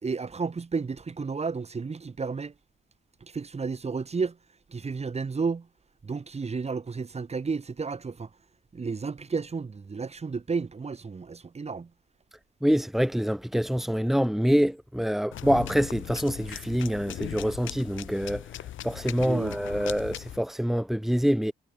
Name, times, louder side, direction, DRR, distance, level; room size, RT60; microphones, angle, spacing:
voice 1, 0.0-2.5 3.2-4.4 4.7-5.7 6.0-8.3 8.7-11.9 19.2-19.6, right 4 dB, 30° right, 4.0 m, -32 dB
voice 2, 12.6-18.5 18.8-21.5, equal, ahead, 2.8 m, -26 dB
sound 1, 15.3-20.4, left 13 dB, 80° left, 2.9 m, -39 dB
cardioid pair, 90°, 20 cm